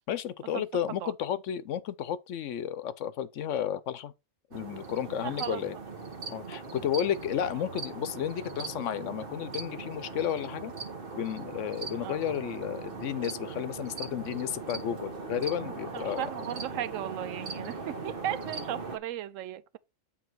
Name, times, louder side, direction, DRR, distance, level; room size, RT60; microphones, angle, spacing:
voice 1, 0.1-4.1 4.5-5.8 6.3-10.7 11.1-16.3, left 9 dB, 75° left, 1.0 m, -32 dB
sound 1, 4.5-19.0, right 4 dB, 45° right, 1.3 m, -40 dB
voice 2, 5.2-5.6 6.5-6.6 12.0-12.2 15.9-19.8, right 11 dB, 80° right, 1.0 m, -36 dB
8.3 x 3.9 x 4.5 m
omnidirectional pair, 1.3 m